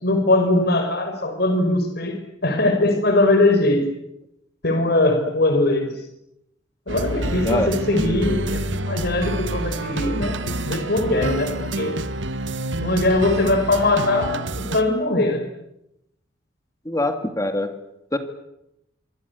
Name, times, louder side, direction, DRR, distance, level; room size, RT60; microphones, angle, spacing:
voice 1, 0.0-2.2 2.4-3.8 4.6-5.9 6.9-11.9 12.8-15.4, left 2 dB, 60° left, 6 dB, 5.0 m, -21 dB
sound 1, 6.9-14.8, right 2 dB, 75° right, 1.8 m, -27 dB
voice 2, 16.9-17.8 18.1-18.2, left 1 dB, 20° left, 7 dB, 2.2 m, -23 dB
25.5 x 25.0 x 8.3 m, 0.83 s
head